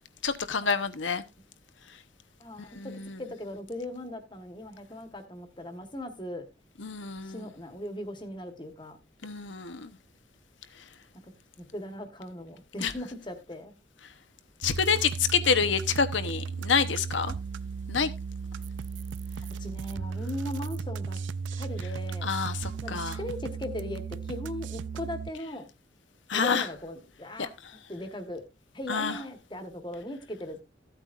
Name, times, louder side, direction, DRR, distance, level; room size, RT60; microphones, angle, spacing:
voice 1, 0.2-1.2 2.8-3.2 6.8-7.5 9.2-9.9 12.8-12.9 14.6-17.3 17.9-18.1 22.2-23.2 26.3-26.7 27.4-27.5 28.9-29.2, left 6 dB, 85° left, 1.0 m, -28 dB
voice 2, 2.4-2.9 3.2-6.4 7.2-9.0 11.6-13.7 19.6-21.2 21.6-22.3 22.8-25.7 26.3-27.5 27.9-28.4 28.7-30.6, left 1 dB, 25° left, 1.3 m, -38 dB
sound 1, 14.6-25.3, right 5 dB, 80° right, 0.4 m, -35 dB
15.0 x 8.8 x 2.5 m
head